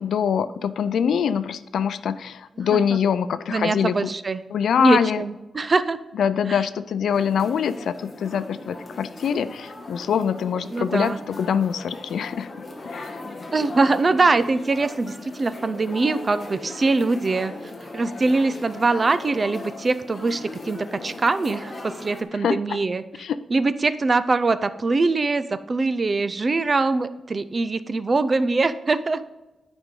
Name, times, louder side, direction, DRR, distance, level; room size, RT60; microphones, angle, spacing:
voice 1, 0.0-4.1 4.5-5.2 6.1-12.5 12.9-13.2 22.3-22.8 23.2-23.4, left 7 dB, 85° left, 14 dB, 0.4 m, -24 dB
voice 2, 3.5-4.4 4.8-6.0 6.5-6.6 10.7-11.2 13.5-17.5 17.9-23.0 23.5-29.2, right 3 dB, 30° right, 13 dB, 0.4 m, -23 dB
sound 1, 7.1-22.2, left 2 dB, 30° left, 1.1 m, -38 dB
11.5 x 5.2 x 3.7 m, 1.1 s
wide cardioid pair, 155°, 0 cm